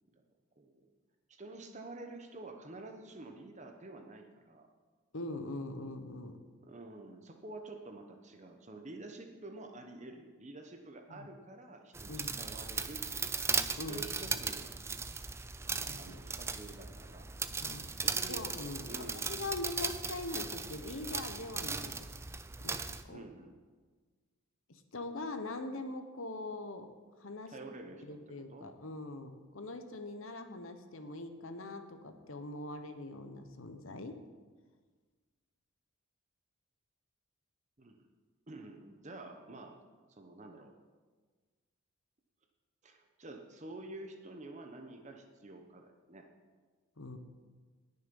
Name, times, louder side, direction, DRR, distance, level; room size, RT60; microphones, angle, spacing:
voice 1, 0.6-0.9 1.3-4.7 6.6-13.3 13.9-14.7 15.7-17.3 18.0-18.4 18.8-19.3 23.1-23.5 27.5-28.2 28.5-28.7 37.8-38.1 38.5-39.8 40.1-40.7 42.8-46.3, right 2 dB, 30° right, 4 dB, 0.9 m, -49 dB
voice 2, 5.1-6.4 11.1-11.3 12.1-12.4 13.7-14.3 15.9-16.2 17.6-17.9 18.3-22.1 22.6-23.2 24.7-26.9 27.2-27.5 28.0-34.2 47.0-47.2, left 2 dB, 65° left, 8 dB, 1.0 m, -42 dB
sound 1, 11.9-23.0, right 5 dB, 10° right, 0.3 m, -37 dB
19.5 x 6.8 x 5.4 m, 1.4 s
head